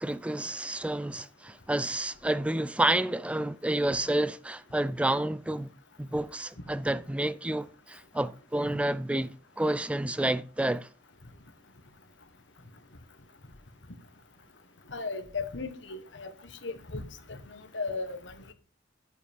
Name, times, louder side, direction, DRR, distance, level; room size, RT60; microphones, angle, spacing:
voice 1, 0.0-5.7 6.0-10.9, right 1 dB, 5° right, 0.3 m, -29 dB
voice 2, 14.9-16.3 16.6-17.0 17.3-18.5, left 4 dB, 75° left, 1.4 m, -36 dB
10.0 x 9.5 x 3.6 m
head